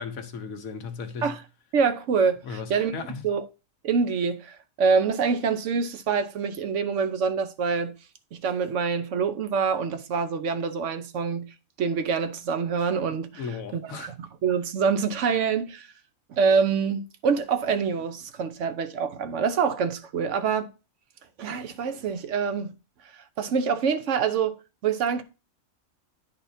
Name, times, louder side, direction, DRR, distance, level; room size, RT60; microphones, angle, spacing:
voice 1, 0.0-1.4 2.4-3.2 13.3-14.1, left 5 dB, 80° left, 1.4 m, -36 dB
voice 2, 1.7-2.9 3.2-3.4 3.8-7.9 8.3-11.5 11.8-13.4 13.7-14.1 14.4-15.9 16.3-20.7 21.4-22.7 23.2-24.6 24.8-25.2, right 5 dB, 65° right, 1.0 m, -25 dB
10.5 x 4.1 x 2.7 m
omnidirectional pair, 1.4 m